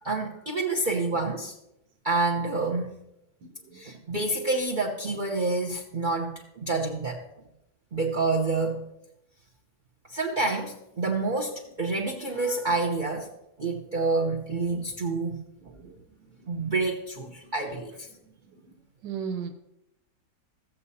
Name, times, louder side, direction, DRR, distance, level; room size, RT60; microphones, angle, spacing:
voice 1, 0.0-1.5 2.0-2.9 3.7-7.2 7.9-8.9 10.1-13.3 13.6-15.4 16.5-18.1, right 3 dB, 35° right, 0 dB, 0.8 m, -28 dB
voice 2, 3.4-3.8 15.8-15.9 19.0-19.5, right 7 dB, 80° right, 4 dB, 1.7 m, -35 dB
16.5 x 7.2 x 2.8 m, 0.86 s
omnidirectional pair, 1.9 m